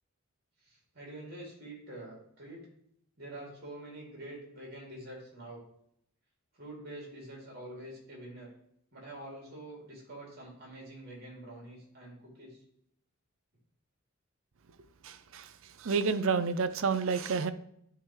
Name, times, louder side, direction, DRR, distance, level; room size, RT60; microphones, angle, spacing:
voice 1, 0.6-2.6 3.2-5.6 6.5-8.5 8.9-12.6, right 1 dB, 45° right, -2 dB, 2.8 m, -46 dB
voice 2, 15.0-15.5 15.8-17.5, right 5 dB, 65° right, 11 dB, 0.5 m, -29 dB
10.5 x 3.7 x 3.2 m, 0.71 s
head